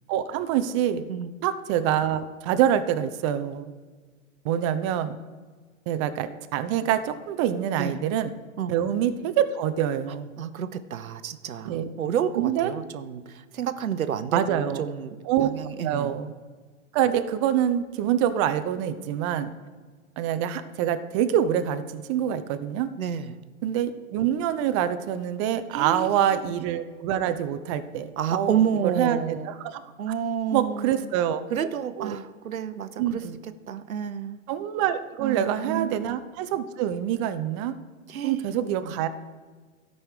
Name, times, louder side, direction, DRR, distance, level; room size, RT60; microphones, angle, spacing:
voice 1, 0.1-1.0 1.4-3.7 4.4-5.2 5.9-8.3 8.7-10.3 11.6-11.9 12.4-12.7 14.3-14.9 15.3-15.5 15.8-16.3 16.9-19.5 20.2-22.9 23.6-29.8 30.5-31.4 32.0-32.2 33.0-33.4 34.5-37.7 38.2-39.1, right 10 dB, 25° right, 11 dB, 0.4 m, -26 dB
voice 2, 10.4-15.2 15.4-16.1 23.0-23.4 25.7-26.3 28.2-29.5 30.0-31.0 31.5-34.4 35.2-36.0 38.1-38.5 38.8-38.9, right 8 dB, 85° right, 12 dB, 0.8 m, -30 dB
12.5 x 5.3 x 4.8 m, 1.5 s
hypercardioid pair, 115°, 41 cm